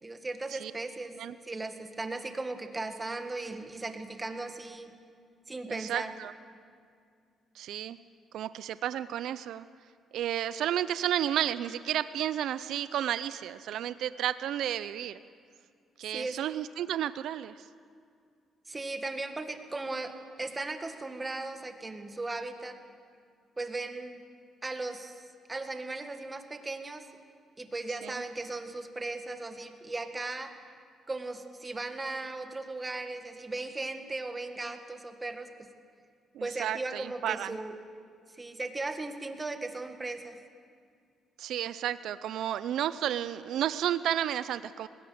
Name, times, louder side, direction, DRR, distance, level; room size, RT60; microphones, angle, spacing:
voice 1, 0.0-1.2 1.4-4.9 5.5-6.1 16.1-16.4 18.7-20.1 20.4-22.8 23.6-24.2 24.6-25.2 25.5-27.1 27.6-30.5 31.1-35.7 36.4-37.8 38.3-40.4, right 2 dB, 20° right, 6 dB, 1.8 m, -37 dB
voice 2, 5.7-6.3 7.6-8.0 8.3-9.6 10.1-15.2 16.0-17.7 28.0-28.2 36.3-37.6 41.4-44.9, right 11 dB, 80° right, 14 dB, 0.5 m, -32 dB
20.0 x 17.5 x 8.0 m, 2.2 s
cardioid pair, 90°, 0 cm